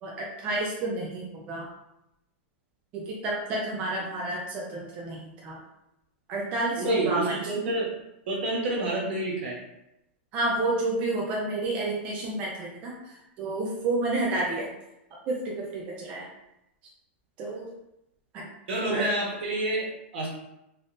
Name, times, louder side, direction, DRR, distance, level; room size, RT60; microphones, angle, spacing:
voice 1, 0.0-1.7 2.9-5.6 6.3-7.4 10.3-14.7 15.3-16.3 17.4-17.7 18.3-18.5 18.9-19.1, right 2 dB, 20° right, -4 dB, 0.4 m, -30 dB
voice 2, 6.8-7.9 8.3-9.6 18.7-20.3, right 1 dB, 65° right, -3 dB, 1.2 m, -28 dB
3.5 x 2.5 x 2.5 m, 0.87 s
supercardioid pair, 180°, 7 cm